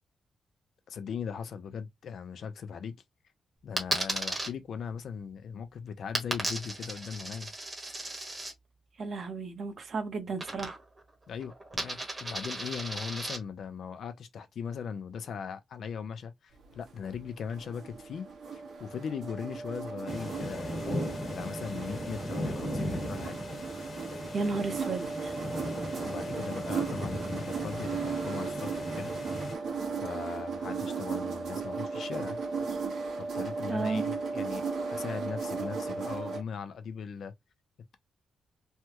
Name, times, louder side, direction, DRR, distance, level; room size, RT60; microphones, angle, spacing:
voice 1, 0.9-2.9 3.6-7.5 11.3-18.3 18.5-21.0 21.3-23.4 26.0-29.1 30.0-32.4 33.2-34.6 34.9-37.3, left 6 dB, 60° left, 0.6 m, -39 dB
Coin (dropping), 3.8-4.5 6.2-8.5 10.4-11.0 11.3-13.4, right 2 dB, 20° right, 1.1 m, -35 dB
voice 2, 9.0-10.8 24.3-25.3 33.7-34.0, right 4 dB, 50° right, 0.9 m, -33 dB
sound 1, 16.7-36.4, right 4 dB, 80° right, 1.3 m, -36 dB
sound 2, 20.1-29.5, left 1 dB, 35° left, 1.5 m, -38 dB
3.3 x 2.3 x 2.9 m
wide cardioid pair, 150°, 0 cm